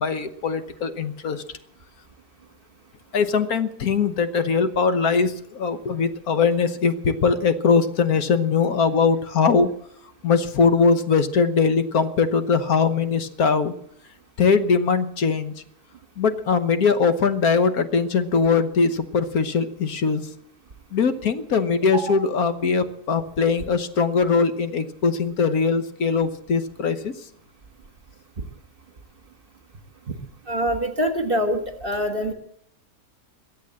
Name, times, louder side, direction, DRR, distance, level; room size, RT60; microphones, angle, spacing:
voice 1, 0.0-1.4 3.1-9.7 10.2-13.7 14.4-15.5 16.2-20.3 20.9-27.1, left 5 dB, 70° left, 10 dB, 1.6 m, -21 dB
voice 2, 30.5-32.3, equal, 35° right, 7 dB, 1.7 m, -24 dB
22.5 x 8.4 x 7.5 m, 0.71 s
omnidirectional pair, 1.6 m